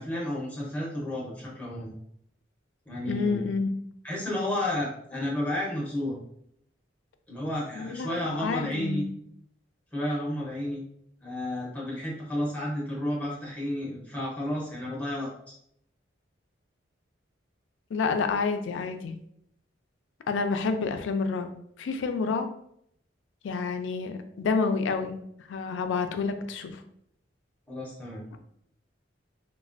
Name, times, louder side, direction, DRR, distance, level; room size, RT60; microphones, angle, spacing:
voice 1, 0.0-1.9 2.9-3.4 4.0-6.2 7.3-9.0 9.9-10.8 11.2-15.5 27.7-28.2, left 1 dB, 10° left, -5 dB, 0.6 m, -32 dB
voice 2, 3.1-3.7 7.7-8.1 8.4-9.1 17.9-19.1 20.3-21.5 21.8-22.5 23.4-25.2 25.5-26.7, left 4 dB, 75° left, 7 dB, 0.3 m, -28 dB
3.1 x 2.1 x 2.4 m, 0.71 s
head